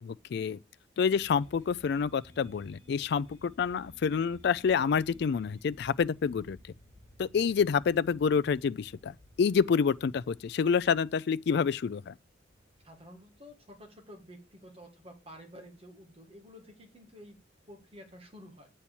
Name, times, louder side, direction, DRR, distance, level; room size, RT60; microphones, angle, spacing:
voice 1, 0.0-0.6 1.0-6.6 7.2-12.1, left 6 dB, 60° left, 0.3 m, -28 dB
sound 1, 1.1-14.0, equal, 15° left, 2.7 m, -57 dB
voice 2, 12.8-17.4 17.7-18.7, equal, 30° right, 1.7 m, -51 dB
8.3 x 4.4 x 7.0 m
head